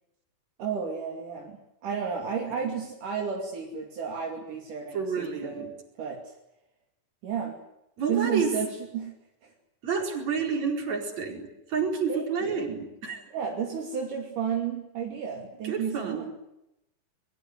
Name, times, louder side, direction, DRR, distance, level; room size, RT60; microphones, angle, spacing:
voice 1, 0.6-5.7 6.0-6.3 7.2-7.6 8.1-9.1 9.4-9.5 12.1-12.8 13.3-16.3, right 7 dB, 70° right, 0 dB, 4.4 m, -32 dB
voice 2, 4.9-5.7 8.0-8.6 9.8-13.2 15.6-16.3, right 5 dB, 55° right, 2 dB, 5.8 m, -29 dB
25.0 x 22.0 x 9.5 m, 0.87 s
omnidirectional pair, 3.8 m